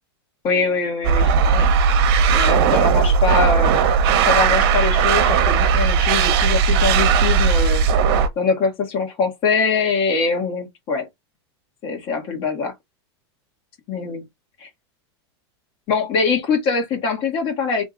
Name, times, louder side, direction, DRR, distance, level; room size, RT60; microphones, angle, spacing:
voice 1, 0.4-1.7 2.3-3.8 4.3-8.0 8.4-11.1 11.8-12.7 13.9-14.2 14.6-14.7 15.9-17.8, left 4 dB, 40° left, 1.8 m, -23 dB
sound 1, 1.0-8.3, right 6 dB, 60° right, 1.1 m, -17 dB
3.5 x 2.9 x 3.7 m
supercardioid pair, 135°, 14 cm